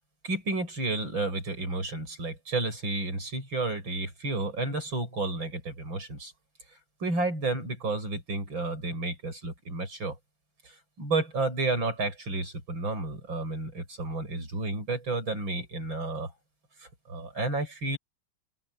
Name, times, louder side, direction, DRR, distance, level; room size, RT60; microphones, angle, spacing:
voice 1, 0.2-6.3 7.0-10.2 10.7-16.3 17.1-18.0, right 2 dB, 60° right, 8.6 m, -31 dB
open air
omnidirectional pair, 2.4 m